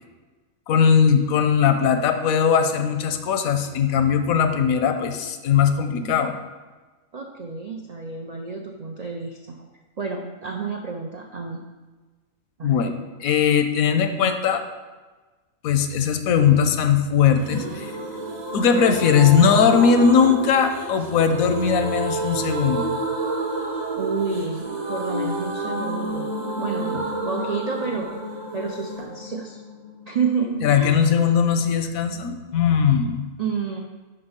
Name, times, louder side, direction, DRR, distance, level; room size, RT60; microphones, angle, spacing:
voice 1, 0.7-6.3 12.6-12.9 13.2-14.6 15.6-17.9 18.5-22.9 30.6-33.3, left 7 dB, 80° left, 8 dB, 1.1 m, -19 dB
voice 2, 7.1-9.7 10.0-11.6 12.6-12.9 24.0-28.1 28.5-29.6 30.1-31.0 33.4-33.8, right 5 dB, 60° right, 1 dB, 0.4 m, -29 dB
sound 1, 17.4-31.0 31.3-31.4 31.6-31.7, right 2 dB, 35° right, 0.8 m, -30 dB
5.6 x 5.3 x 5.5 m, 1.3 s
omnidirectional pair, 1.5 m